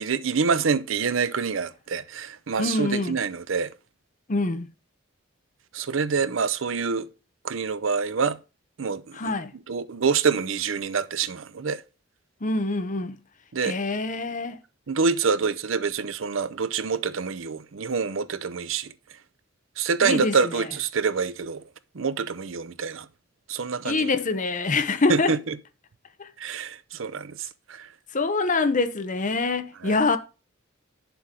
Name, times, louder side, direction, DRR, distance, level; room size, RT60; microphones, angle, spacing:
voice 1, 0.0-3.7 5.7-7.1 7.4-8.4 8.8-9.3 9.7-11.8 13.5-13.8 14.9-18.9 19.8-21.6 21.9-23.1 23.5-24.1 25.1-25.6 26.4-27.9 29.8-30.0, right 5 dB, 80° right, 0.6 m, -26 dB
voice 2, 2.6-3.2 4.3-4.7 9.1-9.5 12.4-13.2 13.6-14.6 20.0-20.6 23.8-25.4 26.2-26.3 28.1-30.2, left 3 dB, 40° left, 0.9 m, -25 dB
9.8 x 7.0 x 3.8 m
head